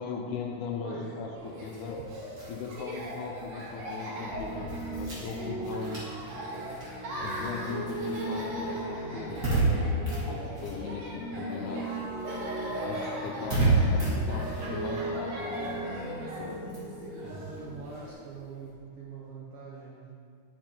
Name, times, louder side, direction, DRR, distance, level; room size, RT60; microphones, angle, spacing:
voice 1, 0.0-2.0 2.5-6.0 7.2-9.5 9.8-10.0 10.3-11.9 12.8-16.6, left 5 dB, 80° left, 2 dB, 1.8 m, -38 dB
voice 2, 0.8-1.5 17.0-20.3, right 4 dB, 75° right, -5 dB, 1.2 m, -44 dB
Laughter, 1.4-18.1, right 1 dB, 60° right, 2.4 m, -40 dB
sound 1, 1.6-11.5 11.8-18.7, right 2 dB, 30° right, 2.1 m, -33 dB
Piano, 4.1-17.8, right 1 dB, 60° left, 2.0 m, -39 dB
10.5 x 5.1 x 4.4 m, 2.4 s
omnidirectional pair, 3.8 m